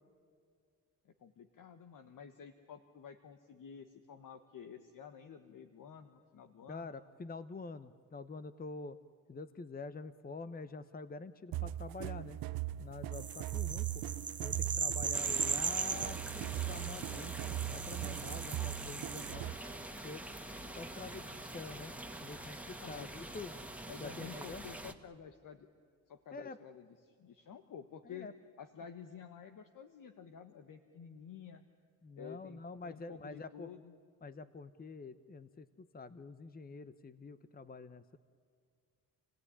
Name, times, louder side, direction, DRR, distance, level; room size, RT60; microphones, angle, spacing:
voice 1, 1.0-6.9 22.8-23.1 23.9-25.7 26.1-28.3 28.6-31.6 32.2-33.9, left 7 dB, 65° left, 8 dB, 1.4 m, -51 dB
voice 2, 6.7-9.0 9.3-12.4 12.8-14.0 14.4-19.5 20.0-20.2 20.8-21.9 22.2-23.5 24.0-24.6 26.3-26.6 28.0-28.3 32.0-33.7 34.2-38.2, left 3 dB, 25° left, 13 dB, 0.9 m, -47 dB
sound 1, 11.5-19.7, right 14 dB, 90° right, 0.6 m, -40 dB
sound 2, 13.1-19.3, right 6 dB, 30° right, 1.0 m, -39 dB
sound 3, 15.1-24.9, right 1 dB, 5° right, 2.1 m, -46 dB
28.5 x 17.0 x 9.9 m, 2.3 s
cardioid pair, 70°, 35 cm